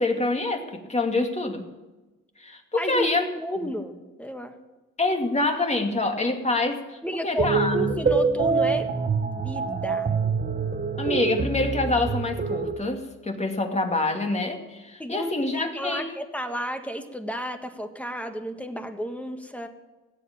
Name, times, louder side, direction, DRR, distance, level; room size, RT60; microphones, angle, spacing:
voice 1, 0.0-1.7 2.4-3.3 3.6-3.7 5.0-7.9 11.0-16.2, left 2 dB, 20° left, 3 dB, 2.4 m, -26 dB
voice 2, 2.7-3.1 3.3-4.6 7.0-8.9 9.2-10.1 15.0-19.7, equal, 5° left, 6 dB, 1.7 m, -32 dB
sound 1, 7.4-12.7, right 5 dB, 30° right, 1.4 m, -25 dB
16.5 x 8.4 x 8.7 m, 1.1 s
cardioid pair, 90°, 30 cm